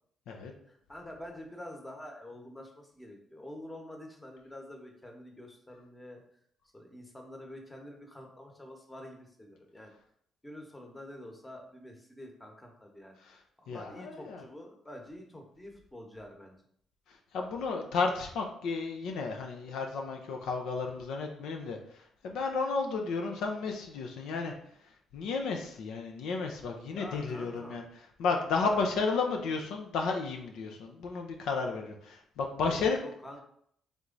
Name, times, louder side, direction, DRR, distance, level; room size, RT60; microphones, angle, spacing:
voice 1, 0.6-6.2 6.7-9.9 10.4-13.2 13.6-16.6 26.9-27.8 28.7-28.8 32.7-33.4, left 1 dB, 15° left, 2 dB, 1.0 m, -47 dB
voice 2, 13.7-14.4 17.3-24.5 25.1-27.8 28.2-33.0, left 4 dB, 85° left, 2 dB, 0.5 m, -32 dB
3.4 x 3.1 x 3.9 m, 0.67 s
cardioid pair, 90°, 0 cm